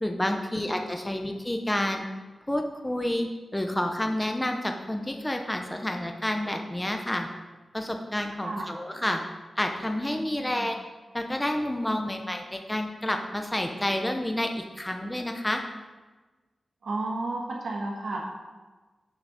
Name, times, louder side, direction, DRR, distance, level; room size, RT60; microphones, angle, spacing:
voice 1, 0.0-2.0 2.5-7.3 7.7-9.2 9.6-10.8 11.1-15.6, left 1 dB, 10° left, 4 dB, 0.5 m, -29 dB
voice 2, 8.4-8.7 10.3-10.7 16.8-18.2, right 2 dB, 65° right, -2 dB, 1.1 m, -33 dB
6.5 x 3.9 x 6.1 m, 1.3 s
wide cardioid pair, 120°, 0 cm